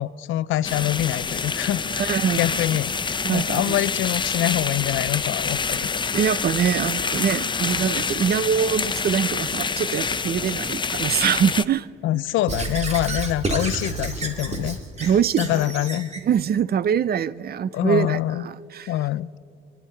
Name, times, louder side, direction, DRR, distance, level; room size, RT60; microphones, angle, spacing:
voice 1, 0.0-6.0 12.0-16.1 17.7-18.5 18.9-19.4, left 14 dB, 80° left, 0.5 m, -25 dB
sound 1, 0.6-11.7, left 5 dB, 25° left, 0.5 m, -27 dB
voice 2, 2.0-2.4 3.2-3.8 6.1-11.9 15.0-15.6 16.2-18.9, right 8 dB, 50° right, 0.5 m, -23 dB
Squeak / Writing, 12.5-16.2, right 3 dB, 35° right, 2.4 m, -29 dB
28.5 x 11.0 x 4.5 m
cardioid pair, 90°, 20 cm